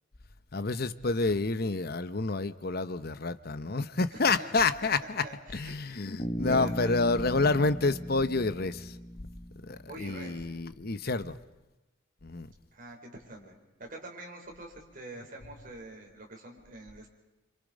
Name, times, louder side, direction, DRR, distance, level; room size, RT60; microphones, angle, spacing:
voice 1, 0.5-5.3 5.5-9.0 9.6-11.4 12.2-12.5, left 3 dB, 50° left, 12 dB, 0.9 m, -29 dB
voice 2, 4.1-6.0 6.4-7.1 9.9-10.5 12.7-17.1, right 2 dB, 45° right, 0 dB, 5.0 m, -45 dB
Bass guitar, 6.2-10.3, equal, 35° left, 1.2 m, -38 dB
27.5 x 27.0 x 5.3 m, 1.1 s
head